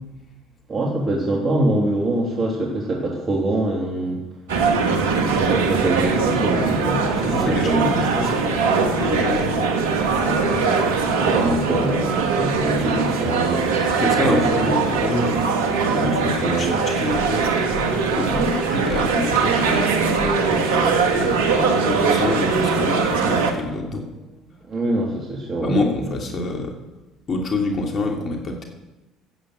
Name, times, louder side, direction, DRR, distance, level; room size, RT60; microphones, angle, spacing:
voice 1, 0.7-4.2 5.1-8.0 10.2-10.6 10.9-14.7 15.9-16.8 18.3-18.7 24.7-25.8, right 1 dB, 35° right, -2 dB, 3.2 m, -24 dB
sound 1, 4.5-23.5, right 5 dB, 80° right, 1.8 m, -21 dB
voice 2, 7.2-9.7 13.9-15.5 16.0-17.6 18.1-18.3 18.6-24.1 25.6-26.8 27.3-28.7, left 2 dB, 45° left, 1 dB, 2.8 m, -26 dB
13.0 x 8.8 x 8.2 m, 1.0 s
hypercardioid pair, 65°, 0 cm